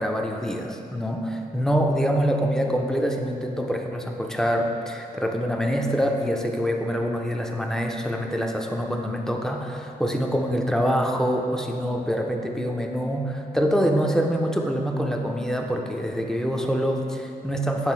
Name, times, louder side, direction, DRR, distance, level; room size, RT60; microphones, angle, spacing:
voice 1, 0.0-17.9, equal, 5° left, 2 dB, 0.6 m, -25 dB
8.1 x 3.4 x 4.4 m, 2.6 s
cardioid pair, 85°, 16 cm